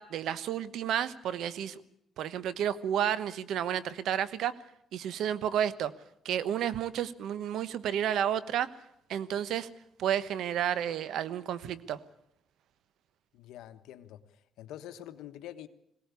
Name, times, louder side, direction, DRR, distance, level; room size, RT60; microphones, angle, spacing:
voice 1, 0.0-1.8 2.2-4.5 4.9-5.9 6.2-8.7 9.1-9.7 10.0-12.0, right 10 dB, 80° right, 1.1 m, -31 dB
voice 2, 13.3-15.7, left 12 dB, 90° left, 1.2 m, -46 dB
21.0 x 18.0 x 8.3 m
cardioid pair, 90°, 0 cm